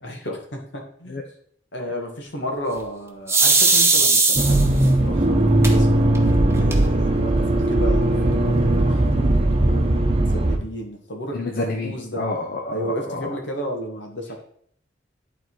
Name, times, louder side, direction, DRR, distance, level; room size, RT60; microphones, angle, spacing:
voice 1, 0.0-1.2 1.7-5.9 6.4-12.3 12.7-14.4, equal, 70° left, 2 dB, 1.8 m, -33 dB
sound 1, 3.3-4.9 5.6-5.7 6.1-6.2 6.5-7.1, right 3 dB, 15° right, 1.1 m, -17 dB
Accelerating revving vroom, 4.4-10.6, right 1 dB, 35° right, 0.9 m, -18 dB
voice 2, 11.3-13.4, left 2 dB, 50° left, 1 dB, 0.8 m, -28 dB
11.0 x 4.0 x 4.7 m, 0.63 s
head